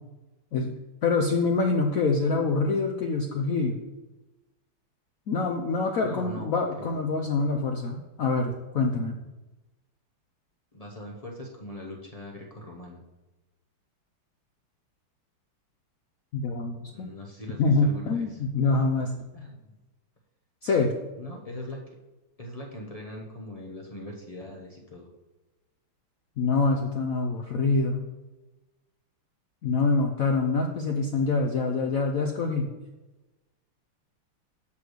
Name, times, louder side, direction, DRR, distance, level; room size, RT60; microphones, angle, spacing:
voice 1, 1.0-3.8 5.3-9.2 16.3-17.1 17.6-19.1 20.6-20.9 26.4-28.0 29.6-32.7, left 3 dB, 85° left, 3 dB, 0.7 m, -25 dB
voice 2, 6.0-6.5 6.8-7.1 10.7-13.0 16.9-18.4 19.3-19.8 21.2-21.8 22.4-25.1 27.5-27.6, left 1 dB, 70° left, -1 dB, 0.3 m, -41 dB
6.5 x 5.8 x 6.3 m, 1.1 s
omnidirectional pair, 2.4 m